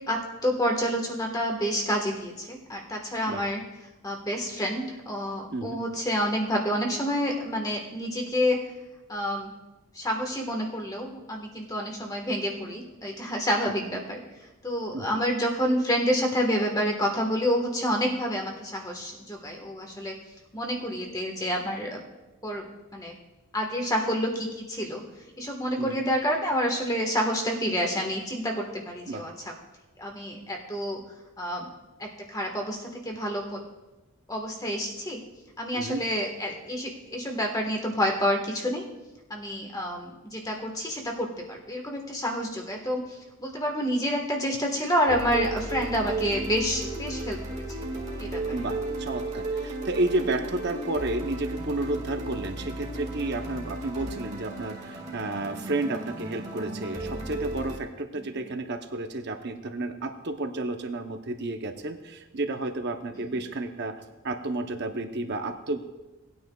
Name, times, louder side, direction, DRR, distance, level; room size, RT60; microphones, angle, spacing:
voice 1, 0.1-3.6 4.0-8.6 9.1-9.5 9.9-14.2 14.6-20.1 20.5-22.0 22.4-22.6 22.9-23.1 23.5-25.0 25.4-29.5 30.0-31.0 31.4-31.7 32.0-33.6 34.3-35.2 35.6-38.8 39.3-47.6 48.2-48.4 58.2-58.3, equal, 15° left, 1 dB, 1.4 m, -28 dB
sound 1, 45.1-57.8, right 2 dB, 30° right, 1.9 m, -34 dB
voice 2, 48.5-64.0 64.2-65.8, right 2 dB, 50° right, 6 dB, 0.8 m, -31 dB
19.0 x 9.4 x 2.4 m, 1.1 s
head